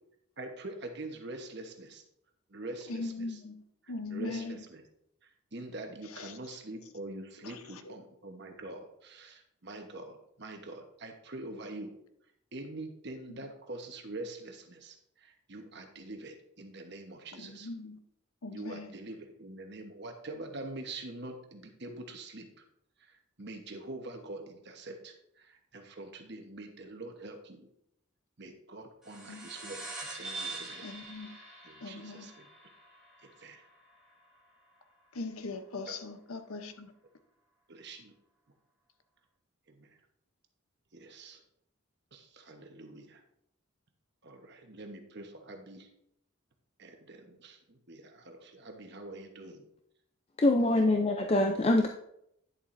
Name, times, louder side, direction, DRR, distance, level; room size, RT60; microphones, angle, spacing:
voice 1, 0.4-2.0 2.5-3.4 3.8-4.8 5.2-12.0 12.5-17.7 18.5-22.5 23.0-27.7 28.4-30.9 31.6-32.5 33.2-33.6 35.9-36.0 37.7-38.1 39.7-39.9 40.9-41.4 42.1-43.2 44.2-45.9 46.8-49.6 50.7-51.0, right 2 dB, 50° right, 1.1 m, -45 dB
voice 2, 2.9-3.6 3.9-4.6 6.1-6.3 7.4-7.9 13.3-13.4 17.4-18.0 18.4-18.9 29.3-29.5 30.8-31.4 31.8-32.3 35.1-36.9, left 3 dB, 85° left, 0.8 m, -40 dB
sound 1, 29.0-33.9, right 2 dB, ahead, 2.3 m, -44 dB
voice 3, 50.4-51.9, left 2 dB, 30° left, 0.4 m, -24 dB
10.5 x 7.2 x 2.6 m
head